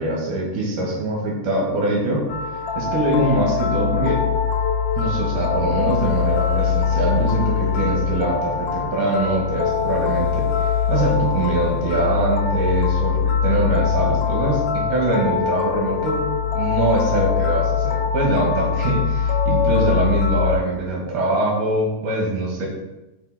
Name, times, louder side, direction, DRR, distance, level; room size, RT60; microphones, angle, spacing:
voice 1, 0.0-2.2 2.8-4.2 5.0-22.7, right 2 dB, 75° right, -2 dB, 2.9 m, -23 dB
sound 1, 2.3-20.6, left 6 dB, 85° left, 2.4 m, -22 dB
5.4 x 4.7 x 4.1 m, 1.0 s
omnidirectional pair, 3.6 m